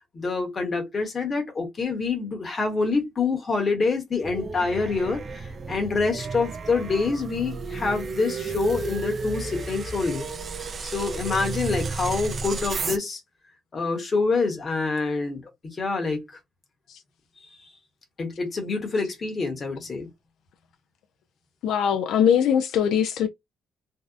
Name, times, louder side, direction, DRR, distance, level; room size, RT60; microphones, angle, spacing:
voice 1, 0.1-10.3 10.8-13.2 13.7-16.4 17.6-17.7 18.2-20.1, left 4 dB, 30° left, 0.9 m, -26 dB
sound 1, 4.2-13.0, right 4 dB, 35° right, 0.3 m, -32 dB
voice 2, 21.6-23.3, left 8 dB, 80° left, 0.3 m, -21 dB
2.6 x 2.0 x 2.3 m
cardioid pair, 150°, 0 cm